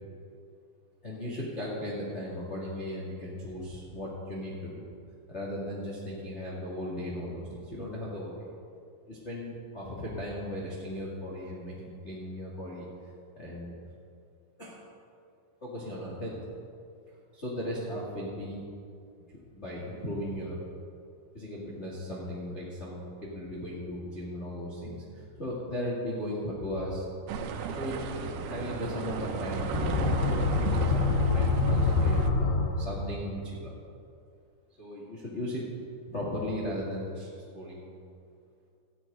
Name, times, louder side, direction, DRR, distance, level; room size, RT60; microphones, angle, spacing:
voice 1, 1.0-4.8 5.3-8.5 9.1-12.9 13.4-13.7 14.6-14.8 15.6-16.4 17.3-18.6 19.5-20.6 21.3-27.0 27.7-30.1 30.5-33.7 34.8-35.6 36.0-37.3 37.5-37.9, left 1 dB, 25° left, -6 dB, 1.6 m, -37 dB
sound 1, 27.3-32.3, right 5 dB, 85° right, 2.8 m, -34 dB
sound 2, 29.5-33.3, left 4 dB, 75° left, 2.8 m, -26 dB
14.0 x 6.2 x 9.2 m, 2.4 s
omnidirectional pair, 4.4 m